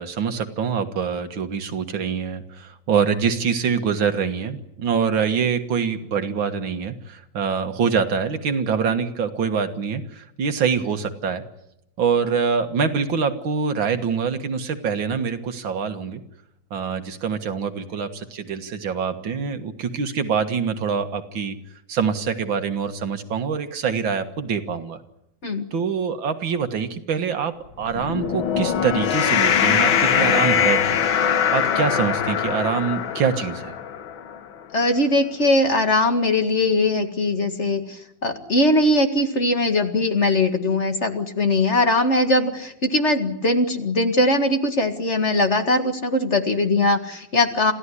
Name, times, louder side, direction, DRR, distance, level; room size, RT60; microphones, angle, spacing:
voice 1, 0.0-11.4 12.0-16.2 16.7-21.6 21.9-25.0 25.7-31.1 31.5-33.8, right 6 dB, 80° right, 8 dB, 2.4 m, -25 dB
sound 1, 27.8-34.4, left 8 dB, 80° left, 1.9 m, -22 dB
voice 2, 34.7-47.7, left 2 dB, 35° left, 6 dB, 2.0 m, -20 dB
27.5 x 15.5 x 9.9 m, 0.81 s
omnidirectional pair, 2.1 m